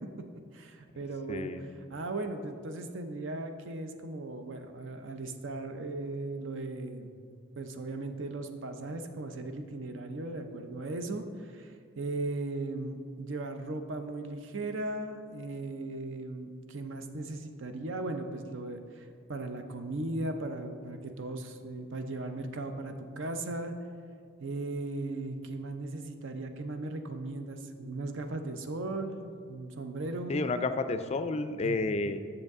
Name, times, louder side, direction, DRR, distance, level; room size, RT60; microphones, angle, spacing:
voice 1, 0.5-7.1 7.6-23.7 24.4-30.4 31.6-31.8, right 2 dB, 70° right, 7 dB, 0.6 m, -37 dB
voice 2, 1.3-1.7 30.3-32.2, left 3 dB, 30° left, 10 dB, 0.3 m, -31 dB
7.9 x 6.7 x 3.6 m, 2.2 s
head